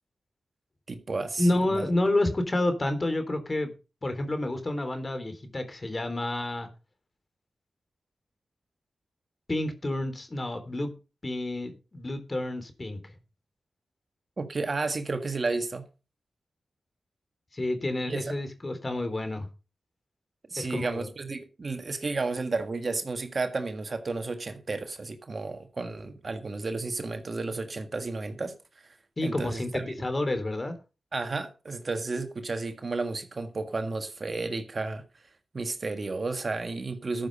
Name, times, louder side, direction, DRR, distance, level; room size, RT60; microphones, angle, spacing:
voice 1, 0.9-1.8 14.4-15.8 18.1-18.3 20.5-28.5 28.8-28.9 29.2-29.9 31.1-35.0 35.5-37.3, right 3 dB, 50° right, 1.7 m, -32 dB
voice 2, 1.4-3.7 4.0-6.7 9.5-10.9 11.2-13.0 17.5-19.5 20.6-21.1 29.2-30.8, left 1 dB, 35° left, 3.6 m, -29 dB
13.5 x 7.2 x 5.4 m
cardioid pair, 55°, 0 cm